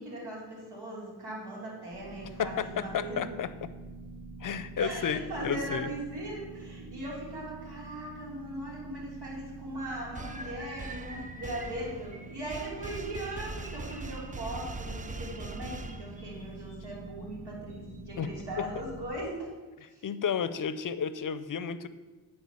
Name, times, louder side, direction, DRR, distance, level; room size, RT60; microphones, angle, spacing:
voice 1, 0.0-3.2 4.8-19.5 19.9-20.0, right 1 dB, 70° right, -4 dB, 3.4 m, -39 dB
sound 1, 1.9-19.1, right 2 dB, 35° right, 3.1 m, -46 dB
voice 2, 2.4-3.7 4.4-5.9 18.2-18.3 20.0-21.9, left 7 dB, 50° left, 14 dB, 0.6 m, -32 dB
sound 2, 9.7-16.9 17.7-17.9 18.2-18.4 18.7-18.9, equal, 55° right, 3.1 m, -49 dB
sound 3, 10.1-16.5, right 3 dB, 20° right, 0.4 m, -42 dB
9.3 x 4.7 x 6.9 m, 1.2 s
cardioid pair, 90°, 40 cm